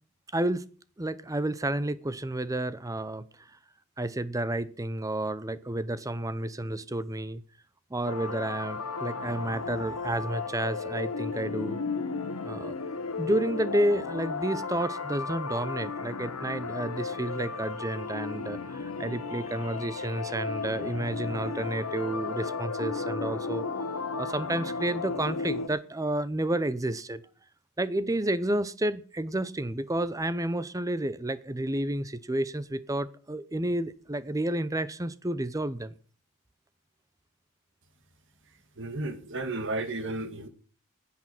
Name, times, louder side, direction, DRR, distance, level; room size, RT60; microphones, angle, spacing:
voice 1, 0.3-0.6 1.0-3.5 4.0-7.4 7.9-11.8 12.4-12.8 13.2-23.6 24.2-27.2 27.8-35.9, right 1 dB, 15° right, 0.7 m, -30 dB
sound 1, 8.0-25.7, left 4 dB, 85° left, 1.4 m, -34 dB
voice 2, 38.8-40.5, right 2 dB, 55° right, 2.0 m, -33 dB
10.5 x 8.6 x 9.1 m
head